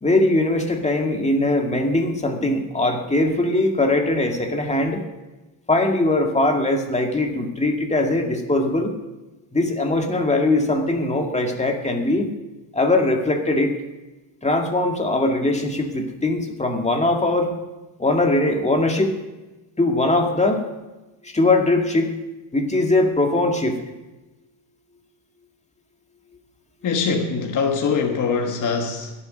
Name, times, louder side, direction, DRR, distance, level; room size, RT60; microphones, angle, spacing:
voice 1, 0.0-5.0 5.7-9.0 9.5-12.3 12.7-13.7 14.4-17.5 18.0-19.2 19.8-20.7 21.2-22.1 22.5-23.8, left 2 dB, 15° left, 3 dB, 2.0 m, -21 dB
voice 2, 26.8-29.1, left 5 dB, 40° left, 2 dB, 1.3 m, -23 dB
21.0 x 7.3 x 5.3 m, 1.1 s
cardioid pair, 105°, 47 cm